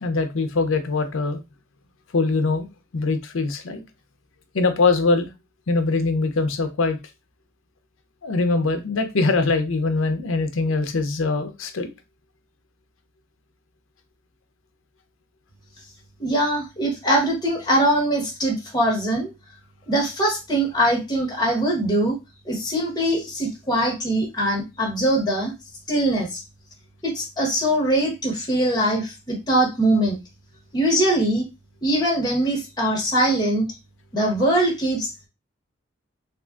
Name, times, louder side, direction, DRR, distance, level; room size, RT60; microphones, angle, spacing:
voice 1, 0.0-1.4 2.1-2.7 2.9-3.8 4.5-5.3 5.7-7.0 8.2-11.9, left 3 dB, 80° left, 8 dB, 0.6 m, -22 dB
voice 2, 16.2-19.3 19.9-22.2 22.5-25.5 25.9-26.4 27.0-30.2 30.7-31.4 31.8-33.7 34.1-35.3, right 1 dB, 20° left, -2 dB, 1.0 m, -22 dB
3.6 x 2.4 x 2.3 m, 0.24 s
head